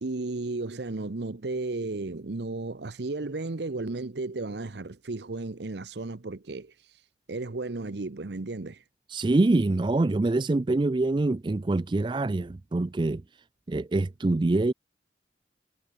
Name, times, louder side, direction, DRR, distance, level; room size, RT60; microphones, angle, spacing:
voice 1, 0.0-6.7 7.3-8.8, right 3 dB, 65° right, 0.8 m, -34 dB
voice 2, 9.1-13.2 13.7-14.7, right 2 dB, 25° right, 0.4 m, -25 dB
head